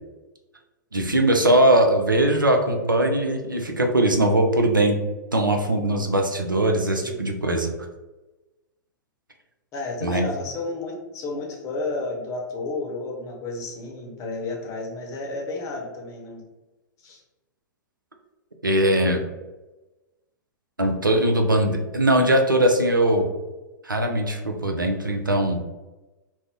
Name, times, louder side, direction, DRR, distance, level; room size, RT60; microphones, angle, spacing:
voice 1, 0.9-5.0 5.3-7.7 10.0-10.3 18.6-19.2 20.8-23.3 23.8-25.6, right 1 dB, 90° right, 3 dB, 0.4 m, -20 dB
voice 2, 5.7-6.1 7.0-7.2 9.7-16.4 17.0-17.2, left 2 dB, 30° left, 0 dB, 0.7 m, -32 dB
2.5 x 2.0 x 3.6 m, 1.1 s
figure-of-eight pair, 100°, 10 cm